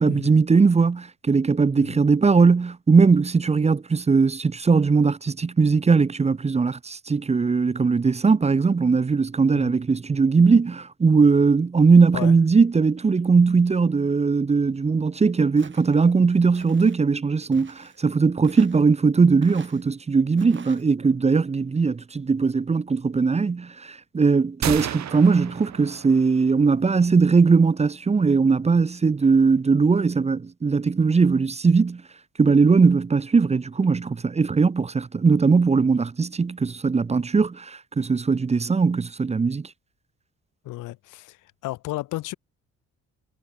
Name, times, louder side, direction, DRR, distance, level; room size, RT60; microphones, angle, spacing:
voice 1, 0.0-32.0 32.4-39.7, right 4 dB, 20° right, 0.7 m, -19 dB
Walk footsteps, 15.6-16.0 16.5-17.0 17.5-18.0 18.4-18.9 19.4-19.8 20.4-20.8, right 6 dB, 40° right, 3.8 m, -46 dB
sound 1, 24.6-26.5, right 11 dB, 65° right, 2.4 m, -32 dB
voice 2, 40.6-41.4 41.6-42.3, left 18 dB, 90° left, 1.1 m, -33 dB
cardioid pair, 90°, 30 cm